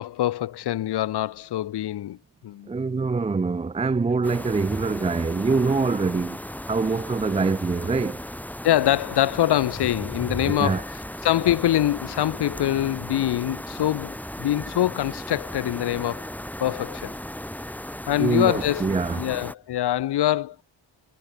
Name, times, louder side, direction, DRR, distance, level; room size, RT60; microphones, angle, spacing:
voice 1, 0.0-2.2 2.4-2.7 8.6-16.3 16.6-17.2 18.1-20.6, left 13 dB, 65° left, 1.1 m, -24 dB
voice 2, 2.7-6.4 6.7-8.2 10.5-10.8 18.2-19.2, right 4 dB, 15° right, 0.5 m, -24 dB
sound 1, 4.2-19.6, left 1 dB, 5° left, 4.1 m, -36 dB
cardioid pair, 120°, 42 cm